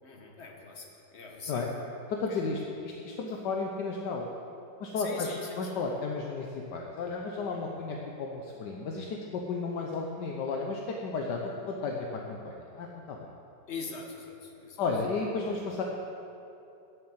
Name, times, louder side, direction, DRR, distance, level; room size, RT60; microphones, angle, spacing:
voice 1, 0.0-1.7 2.3-2.5 4.9-5.8 7.5-7.8 11.0-11.2 13.7-14.8, left 4 dB, 40° left, 1 dB, 1.4 m, -42 dB
voice 2, 2.1-4.3 4.8-13.3 14.8-15.8, left 4 dB, 75° left, 0 dB, 1.5 m, -33 dB
10.5 x 7.8 x 7.8 m, 2.8 s
omnidirectional pair, 1.9 m